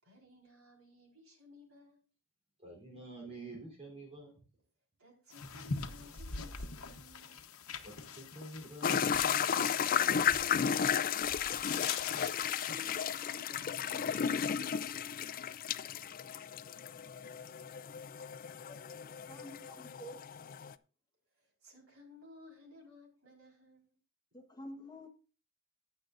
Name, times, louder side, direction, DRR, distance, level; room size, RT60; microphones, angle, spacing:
voice 1, 0.0-2.0 5.0-7.5 12.1-14.6 21.4-23.9, left 1 dB, 75° right, 4.4 m, -57 dB
voice 2, 2.6-4.4 7.8-10.4, right 2 dB, 30° right, 3.5 m, -49 dB
sound 1, 5.3-13.2, left 5 dB, 70° left, 1.1 m, -43 dB
sound 2, 8.8-20.7, left 8 dB, 40° left, 0.4 m, -34 dB
voice 3, 18.7-20.5 24.3-25.1, equal, 20° left, 1.2 m, -50 dB
19.0 x 6.6 x 2.6 m
head